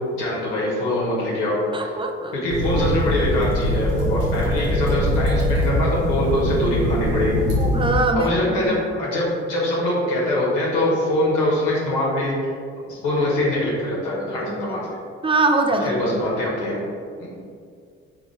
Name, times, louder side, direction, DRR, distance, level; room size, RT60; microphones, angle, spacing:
voice 1, 0.1-1.9 2.3-7.4 8.1-12.3 12.9-14.8 15.8-16.8 17.2-17.3, left 1 dB, 75° left, -6 dB, 1.3 m, -23 dB
voice 2, 1.7-2.4 7.6-8.7 14.4-14.8 15.2-16.0, right 2 dB, 15° right, 4 dB, 0.5 m, -23 dB
sound 1, 2.5-8.0, equal, 90° right, 1.1 m, -22 dB
4.0 x 3.2 x 3.3 m, 2.2 s
hypercardioid pair, 55°, 32 cm